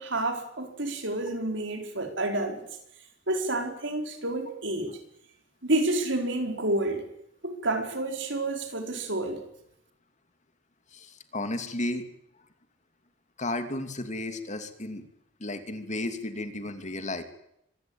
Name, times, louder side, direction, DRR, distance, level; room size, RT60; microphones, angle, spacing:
voice 1, 0.0-2.7 3.3-5.0 5.6-7.1 7.4-9.4, right 2 dB, 65° right, 4.6 m, -29 dB
voice 2, 10.9-12.1 13.4-15.0 15.4-17.2, left 2 dB, 40° left, 2.7 m, -33 dB
25.0 x 18.5 x 8.9 m
head